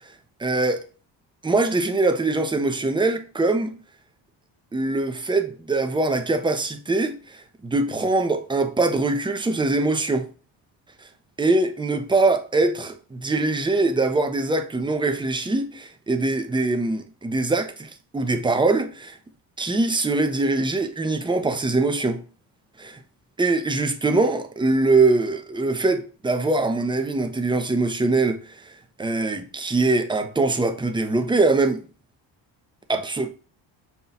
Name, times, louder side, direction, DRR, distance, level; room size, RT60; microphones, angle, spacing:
voice 1, 0.4-0.8 1.4-3.7 4.7-10.3 11.4-19.2 19.6-22.2 22.8-23.0 23.4-28.6 29.0-31.8 32.9-33.3, right 3 dB, 10° right, 0.6 m, -22 dB
5.7 x 2.3 x 4.0 m
cardioid pair, 110°, 44 cm